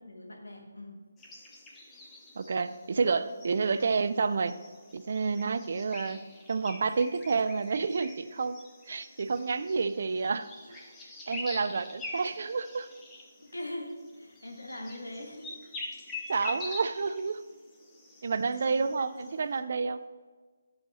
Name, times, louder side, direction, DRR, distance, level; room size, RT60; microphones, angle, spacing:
voice 1, 0.1-0.9 3.7-3.8 9.2-9.3 13.4-15.5 18.7-18.8, left 1 dB, 90° left, 1 dB, 1.6 m, -41 dB
sound 1, 1.2-19.6, left 2 dB, 10° left, 0.9 m, -46 dB
voice 2, 2.4-4.5 4.9-8.6 8.9-10.5 11.3-12.9 16.3-17.4 18.2-20.0, right 4 dB, 55° right, 13 dB, 0.4 m, -29 dB
10.0 x 6.3 x 3.0 m, 1.4 s
figure-of-eight pair, 155°, 0 cm